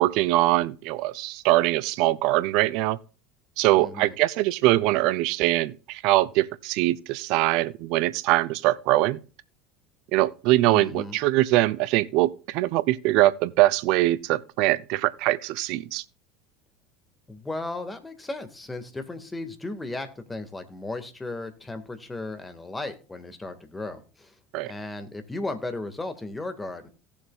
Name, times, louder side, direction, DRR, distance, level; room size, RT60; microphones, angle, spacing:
voice 1, 0.0-3.0 3.6-9.2 10.1-16.0 24.5-24.7, right 17 dB, 65° right, 0.5 m, -22 dB
voice 2, 3.8-4.1 10.7-11.2 17.3-24.3 24.6-26.9, left 2 dB, 15° left, 1.7 m, -35 dB
17.5 x 7.1 x 2.4 m
hypercardioid pair, 75°, 0 cm